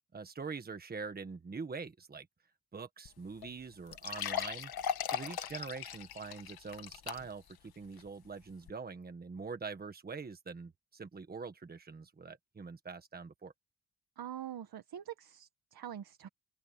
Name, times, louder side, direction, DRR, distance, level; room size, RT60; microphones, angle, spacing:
voice 1, 0.1-2.3 2.7-4.7 5.1-13.5, right 4 dB, 25° right, 1.4 m, -44 dB
sound 1, 3.1-3.2 3.4-3.5 3.9-7.5 8.0-8.1 8.7-8.8, left 9 dB, 80° left, 1.4 m, -38 dB
voice 2, 14.2-16.3, right 10 dB, 85° right, 1.6 m, -44 dB
open air
wide cardioid pair, 180°, 36 cm